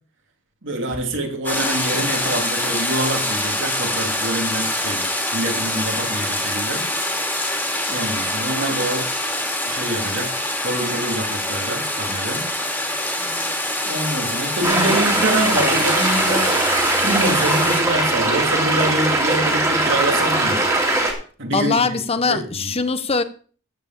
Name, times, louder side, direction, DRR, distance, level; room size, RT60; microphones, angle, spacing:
voice 1, 0.6-5.0 5.3-6.8 7.9-9.1 9.7-12.4 13.8-16.5 17.0-20.6 21.4-21.9 22.3-22.7, right 1 dB, 55° right, 2.8 m, -25 dB
sound 1, 1.4-17.8, left 1 dB, 10° left, 2.6 m, -25 dB
voice 2, 13.2-13.6 21.5-23.2, left 4 dB, 25° left, 0.8 m, -22 dB
sound 2, 14.6-21.1, right 2 dB, 15° right, 2.6 m, -20 dB
14.0 x 4.7 x 7.5 m
head